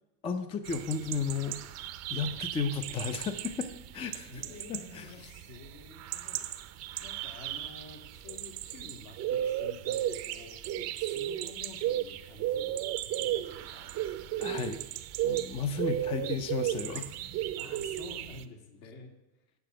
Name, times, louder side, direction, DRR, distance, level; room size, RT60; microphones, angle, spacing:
voice 1, 0.2-1.6 2.1-4.3 4.7-5.3 14.4-14.8 15.2-17.2, left 5 dB, 15° left, 10 dB, 0.4 m, -34 dB
sound 1, 0.6-18.4, right 12 dB, 35° right, 0.6 m, -35 dB
voice 2, 4.3-14.6 15.9-16.4 17.6-19.1, left 4 dB, 70° left, 2 dB, 2.3 m, -50 dB
8.0 x 6.9 x 7.5 m, 0.95 s
supercardioid pair, 125°, 44 cm